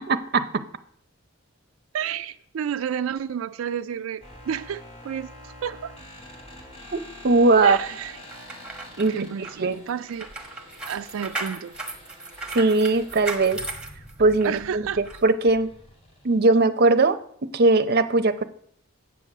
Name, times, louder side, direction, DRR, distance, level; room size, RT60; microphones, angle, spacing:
voice 1, 0.1-0.6 7.2-7.8 9.0-9.3 9.6-9.8 12.5-13.6 14.2-15.7 16.2-18.4, right 3 dB, 50° right, 9 dB, 0.6 m, -20 dB
voice 2, 1.9-5.9 7.6-8.2 9.1-10.3 10.9-11.7 14.4-15.0, right 8 dB, 90° right, 9 dB, 0.4 m, -31 dB
sound 1, 4.2-16.4, left 1 dB, 30° left, 2.8 m, -46 dB
sound 2, 8.3-14.6 15.0-15.2, right 3 dB, 5° right, 1.2 m, -36 dB
8.3 x 7.4 x 6.5 m, 0.66 s
head